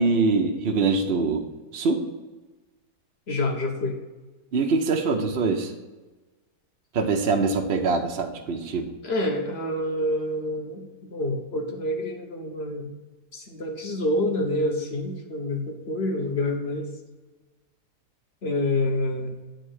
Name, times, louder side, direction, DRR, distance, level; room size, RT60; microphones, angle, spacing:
voice 1, 0.0-1.4 1.7-2.0 4.5-5.7 6.9-8.9, right 4 dB, 50° right, 2 dB, 0.7 m, -23 dB
voice 2, 3.3-4.0 9.0-12.9 13.3-16.9 18.4-19.4, left 1 dB, 45° left, 2 dB, 1.2 m, -27 dB
9.1 x 3.3 x 6.3 m, 1.2 s
omnidirectional pair, 1.8 m